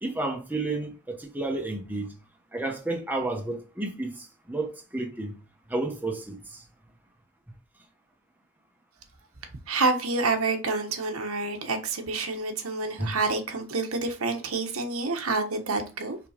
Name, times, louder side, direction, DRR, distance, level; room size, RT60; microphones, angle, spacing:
voice 1, 0.0-2.1 2.5-5.3 5.7-6.6 13.0-13.1, right 2 dB, 10° right, 1.0 m, -31 dB
voice 2, 9.7-16.2, right 3 dB, 80° right, 1.2 m, -28 dB
5.3 x 3.8 x 4.9 m
head